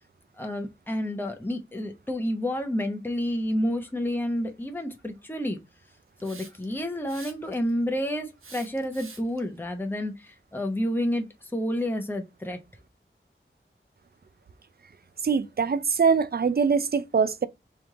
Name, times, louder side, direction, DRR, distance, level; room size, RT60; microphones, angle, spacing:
voice 1, 0.4-5.6 6.2-12.6, equal, 10° left, 0.8 m, -29 dB
Hiss, 6.2-6.7 7.1-7.7 8.4-9.4, right 4 dB, 80° right, 0.9 m, -46 dB
voice 2, 15.2-17.5, right 5 dB, 50° right, 0.5 m, -23 dB
3.4 x 3.1 x 3.6 m
wide cardioid pair, 55°, 21 cm